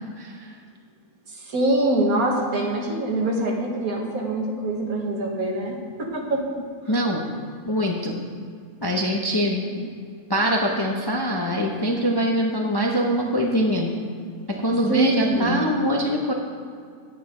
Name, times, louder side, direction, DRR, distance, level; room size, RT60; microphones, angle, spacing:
voice 1, 0.2-0.5 6.9-7.3 7.7-8.2 8.8-9.9 10.3-13.9 14.5-16.3, equal, 25° left, -1 dB, 0.6 m, -23 dB
voice 2, 1.5-6.4 14.9-15.6, right 1 dB, 70° right, 0 dB, 1.8 m, -24 dB
9.4 x 9.1 x 3.8 m, 2.2 s
omnidirectional pair, 1.6 m